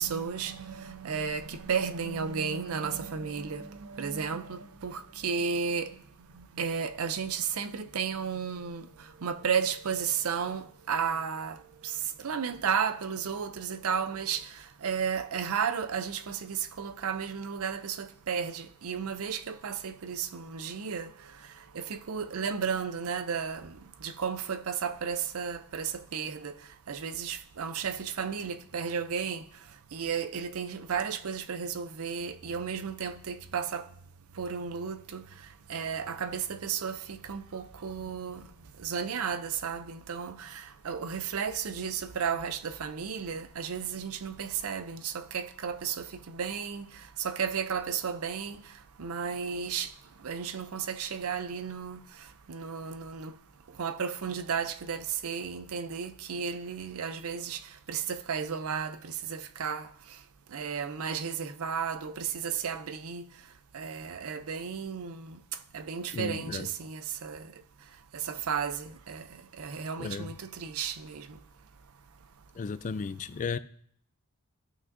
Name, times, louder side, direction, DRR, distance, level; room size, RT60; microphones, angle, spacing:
voice 1, 0.0-5.9 6.3-8.9 9.2-21.1 21.7-26.5 26.9-29.4 29.9-33.9 34.4-35.2 35.7-38.4 38.8-46.9 47.2-48.6 49.0-49.9 50.2-52.0 52.5-53.3 53.8-57.6 57.9-59.9 60.5-63.2 63.7-65.4 65.7-67.5 68.1-69.2 69.6-71.4, right 6 dB, 75° right, 0.5 m, -33 dB
voice 2, 66.1-66.7 70.0-70.4 72.6-73.6, left 5 dB, 35° left, 0.3 m, -34 dB
15.5 x 6.0 x 2.6 m
head